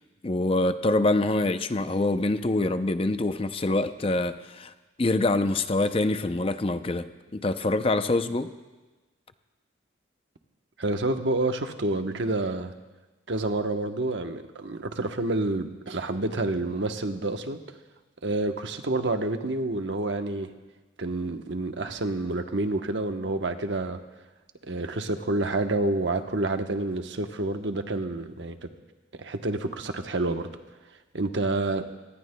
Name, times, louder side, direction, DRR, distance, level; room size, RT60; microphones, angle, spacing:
voice 1, 0.2-4.7 5.0-8.5, left 2 dB, 30° left, 10 dB, 0.5 m, -25 dB
voice 2, 10.8-12.7 13.3-17.6 18.2-20.5 21.0-24.0 24.6-28.7 29.1-30.5 31.1-31.9, right 2 dB, 80° right, 6 dB, 1.0 m, -28 dB
25.0 x 19.5 x 2.2 m, 1.2 s
head